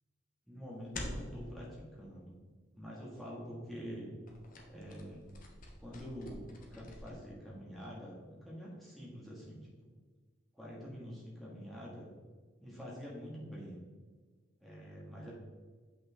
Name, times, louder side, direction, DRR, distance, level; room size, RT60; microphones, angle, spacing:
voice 1, 0.5-2.4 2.7-4.1 4.7-5.2 5.8-9.7 10.5-12.1 12.6-13.8 14.6-15.3, equal, ahead, -6 dB, 1.7 m, -46 dB
sound 1, 0.8-1.4 4.3-7.1, left 1 dB, 40° left, 1.0 m, -46 dB
7.4 x 5.7 x 3.6 m, 1.4 s
head